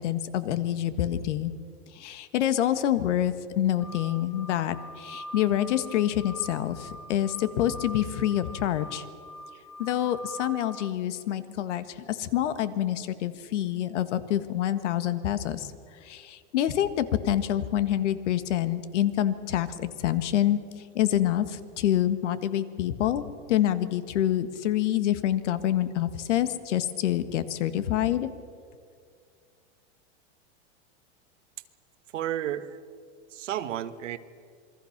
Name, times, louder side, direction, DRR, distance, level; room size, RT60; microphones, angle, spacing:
voice 1, 0.0-1.5 1.9-9.0 9.8-15.7 16.0-20.6 20.9-23.2 23.5-28.3, left 12 dB, 75° left, 11 dB, 1.7 m, -27 dB
sound 1, 3.8-10.9, equal, 5° left, 1.4 m, -44 dB
voice 2, 32.1-32.8 33.3-34.2, right 11 dB, 90° right, 10 dB, 1.5 m, -32 dB
27.5 x 22.5 x 6.0 m, 2.2 s
supercardioid pair, 155°, 36 cm